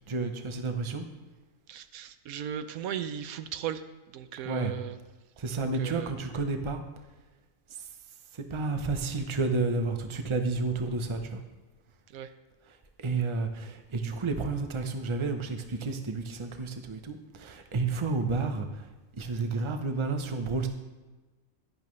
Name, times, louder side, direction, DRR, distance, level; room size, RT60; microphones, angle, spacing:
voice 1, 0.1-1.1 4.4-4.7 5.4-6.8 7.7-7.9 8.3-11.4 12.7-18.9 19.1-20.7, right 3 dB, 25° right, 6 dB, 0.7 m, -31 dB
voice 2, 1.7-3.8 4.1-5.0 5.5-6.1 12.1-12.3, right 9 dB, 85° right, 11 dB, 1.1 m, -37 dB
11.0 x 10.5 x 3.2 m, 1.2 s
omnidirectional pair, 1.4 m